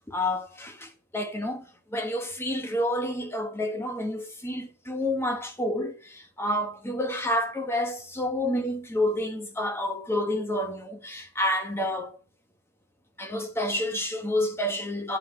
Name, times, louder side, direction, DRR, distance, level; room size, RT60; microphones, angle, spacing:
voice 1, 0.1-1.6 1.9-12.2 13.2-15.2, left 1 dB, 10° left, 1.4 m, -29 dB
10.5 x 5.8 x 8.7 m
head